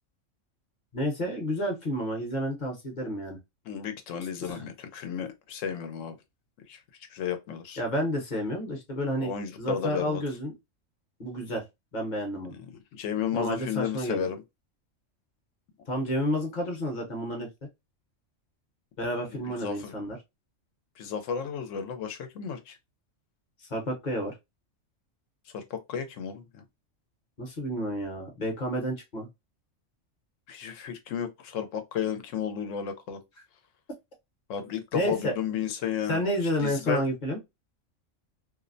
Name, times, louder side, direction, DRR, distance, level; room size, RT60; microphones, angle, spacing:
voice 1, 0.9-3.4 4.4-4.6 7.8-9.3 9.6-10.5 11.2-11.6 11.9-12.6 13.3-14.3 15.9-17.7 19.0-20.2 23.7-24.3 27.4-29.3 34.9-35.3 36.1-37.4, equal, 40° left, 0.8 m, -30 dB
voice 2, 3.7-6.2 6.7-7.8 9.2-10.2 12.5-14.4 19.2-20.0 21.0-22.8 25.5-26.6 30.5-33.2 34.5-36.2 36.6-37.0, left 7 dB, 80° left, 0.9 m, -33 dB
2.5 x 2.0 x 2.5 m
omnidirectional pair, 1.3 m